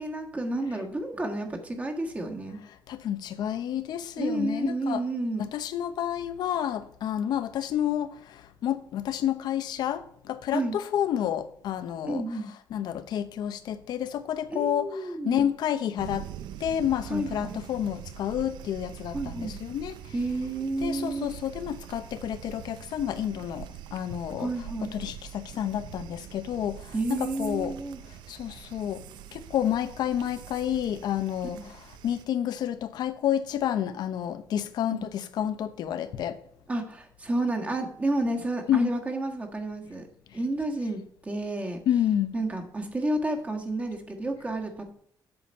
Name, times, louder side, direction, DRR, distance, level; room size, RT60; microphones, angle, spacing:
voice 1, 0.0-2.6 4.2-5.5 10.5-10.8 12.0-12.5 14.5-15.4 17.1-17.6 19.1-19.6 20.1-21.4 24.4-24.9 26.9-28.0 31.5-31.6 34.9-35.0 36.7-40.1 40.3-41.8 42.3-44.9, right 2 dB, 20° right, 1.5 m, -31 dB
voice 2, 2.9-5.0 5.4-12.2 12.7-16.3 16.6-20.0 20.8-24.5 24.8-27.7 28.3-29.0 29.3-31.8 32.0-36.4 38.7-38.9 41.9-42.3, left 10 dB, 70° left, 0.8 m, -30 dB
sound 1, 16.0-32.3, right 12 dB, 90° right, 0.5 m, -44 dB
8.0 x 7.5 x 5.4 m
cardioid pair, 140°, 7 cm